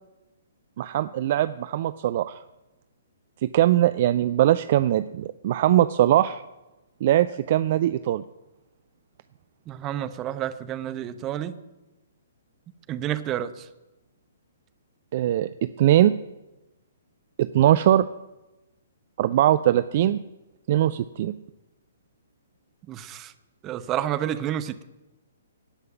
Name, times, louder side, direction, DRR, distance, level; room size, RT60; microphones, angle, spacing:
voice 1, 0.8-2.4 3.4-6.4 7.0-8.2 15.1-16.1 17.4-18.1 19.2-20.2 20.7-21.3, right 12 dB, 40° right, 13 dB, 0.4 m, -21 dB
voice 2, 9.7-11.6 12.9-13.7 22.9-23.3 23.6-24.8, right 11 dB, 20° right, 11 dB, 0.8 m, -30 dB
17.0 x 5.7 x 9.2 m, 1.0 s
figure-of-eight pair, 120°, 0 cm